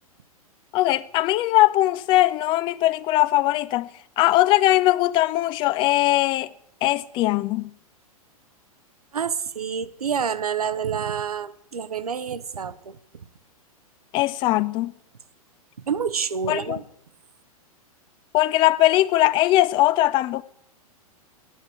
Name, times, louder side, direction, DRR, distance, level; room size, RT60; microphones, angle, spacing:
voice 1, 0.7-3.9 4.2-6.5 6.8-7.7 14.1-14.9 16.5-16.8 18.3-20.4, left 16 dB, 25° left, 0.4 m, -20 dB
voice 2, 9.1-13.0 15.9-16.8, right 7 dB, 75° right, 0.8 m, -28 dB
10.0 x 9.0 x 8.0 m
figure-of-eight pair, 105°, 19 cm